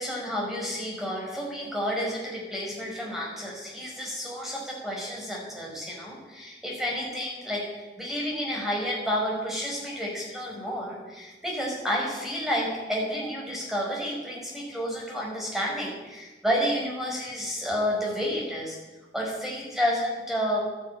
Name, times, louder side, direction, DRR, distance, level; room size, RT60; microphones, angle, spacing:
voice 1, 0.0-18.8 19.1-20.6, equal, ahead, -3 dB, 5.1 m, -30 dB
12.0 x 10.5 x 8.8 m, 1.2 s
head